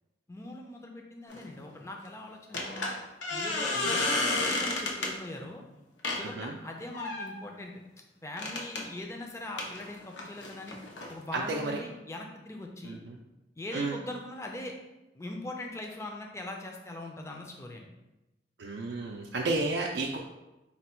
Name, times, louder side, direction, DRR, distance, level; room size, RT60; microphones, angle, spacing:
voice 1, 0.3-3.0 3.3-5.6 6.1-7.7 8.2-10.8 11.1-13.0 13.6-14.8 15.1-17.9, left 1 dB, 15° left, 2 dB, 0.4 m, -41 dB
sound 1, 1.3-1.5 2.5-5.1 6.0-6.2 6.9-7.4 8.4-8.8 9.6-11.1, left 2 dB, 90° left, 0.7 m, -31 dB
voice 2, 6.2-6.6 11.3-11.8 12.8-13.0 13.7-14.0 18.6-20.2, right 3 dB, 80° right, -1 dB, 0.4 m, -32 dB
4.3 x 2.2 x 4.3 m, 1.0 s
head